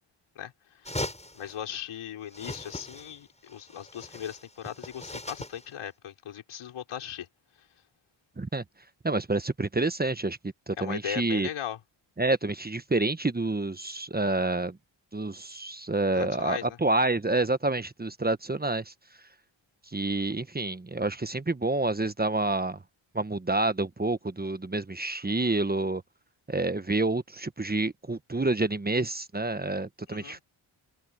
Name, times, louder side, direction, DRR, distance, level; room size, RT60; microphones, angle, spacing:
voice 1, 0.4-0.9 1.3-7.3 7.6-7.7 10.8-11.8 16.1-16.8 30.1-30.4, left 10 dB, 90° left, 6.0 m, -38 dB
sound 1, 0.8-1.6 2.3-3.2 3.5-5.7, left 1 dB, 15° left, 7.5 m, -39 dB
voice 2, 9.0-11.5 12.2-14.8 15.1-18.9 19.9-22.8 23.1-26.0 26.5-30.4, right 2 dB, 20° right, 1.2 m, -28 dB
open air
cardioid pair, 55°, 48 cm